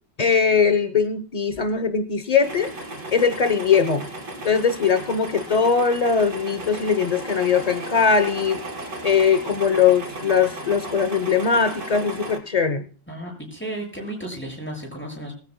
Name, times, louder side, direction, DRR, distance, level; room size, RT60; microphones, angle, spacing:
voice 1, 0.2-2.7 3.1-4.1 4.4-8.6 9.0-12.9, left 6 dB, 40° left, 10 dB, 0.5 m, -20 dB
sound 1, 2.4-12.4, right 1 dB, 65° right, 4.2 m, -35 dB
voice 2, 13.1-15.3, right 1 dB, 5° left, 0 dB, 7.4 m, -33 dB
21.5 x 15.0 x 2.2 m, 0.41 s
omnidirectional pair, 1.9 m